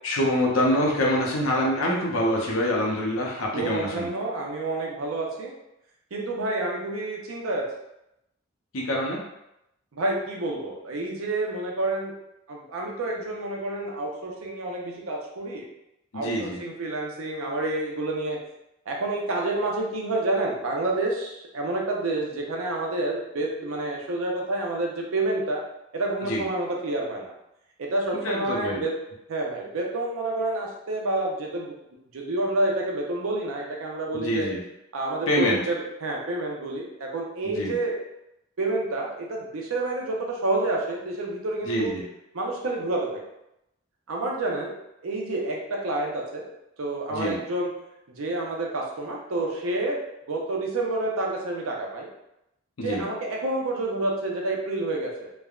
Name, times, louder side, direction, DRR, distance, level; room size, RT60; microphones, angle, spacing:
voice 1, 0.0-4.1 8.7-9.2 16.1-16.6 26.3-26.4 28.2-28.8 34.1-34.6 35.3-35.6 37.6-37.7 41.6-42.0 47.1-47.4 52.8-53.0, left 1 dB, 80° left, -2 dB, 0.7 m, -25 dB
voice 2, 3.5-5.5 6.1-7.7 9.9-12.1 12.5-15.7 16.1-18.4 18.9-25.6 25.9-27.3 27.8-28.9 29.3-31.7 32.1-34.5 34.9-38.0 38.6-41.9 42.3-43.2 44.1-44.7 45.0-46.5 46.8-47.7 48.2-52.1 52.8-55.3, right 2 dB, 90° right, -1 dB, 0.6 m, -29 dB
3.2 x 2.1 x 2.3 m, 0.85 s
head